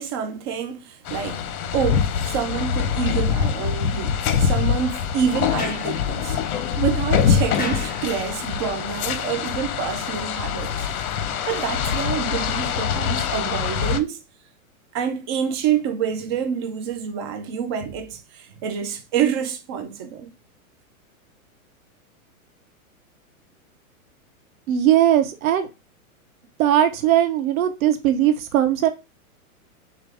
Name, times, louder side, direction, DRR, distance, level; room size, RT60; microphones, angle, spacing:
voice 1, 0.0-1.5 1.7-6.4 6.8-10.7 11.5-14.2 14.9-20.3, right 8 dB, 20° right, 0.3 m, -27 dB
sound 1, 1.1-14.0, left 7 dB, 75° left, 0.8 m, -24 dB
Sliding door, 5.4-8.7, left 4 dB, 20° left, 2.0 m, -37 dB
voice 2, 24.7-25.7 26.6-28.9, right 11 dB, 70° right, 1.0 m, -19 dB
6.5 x 2.2 x 3.4 m
hypercardioid pair, 140°, 43 cm